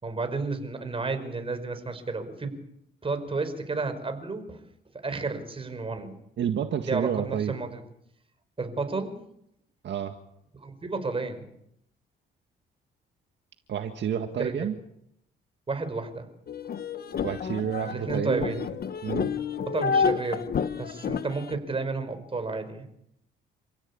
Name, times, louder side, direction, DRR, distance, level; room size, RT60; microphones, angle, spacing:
voice 1, 0.0-2.5 3.0-4.6 4.9-6.1 6.8-7.8 8.6-9.2 10.6-11.5 14.4-14.7 15.7-16.3 17.9-18.6 19.6-20.5 20.8-22.8, right 3 dB, 30° right, 8 dB, 5.3 m, -32 dB
voice 2, 6.4-7.5 9.8-10.2 13.7-14.8 17.2-18.7 19.0-19.3, right 8 dB, 65° right, 6 dB, 1.9 m, -29 dB
sound 1, 16.5-21.6, left 6 dB, 50° left, 1.3 m, -29 dB
28.5 x 16.5 x 8.8 m, 0.78 s
cardioid pair, 90°, 20 cm